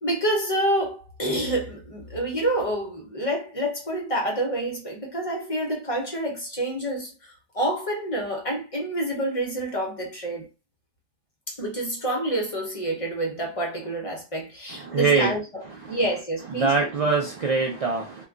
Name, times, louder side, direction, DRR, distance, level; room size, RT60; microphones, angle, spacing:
voice 1, 0.0-10.5 11.5-17.1, right 1 dB, 35° left, 0.8 m, -28 dB
voice 2, 14.9-15.3 16.6-18.2, right 4 dB, 50° right, 0.4 m, -23 dB
2.2 x 2.2 x 3.7 m
omnidirectional pair, 1.0 m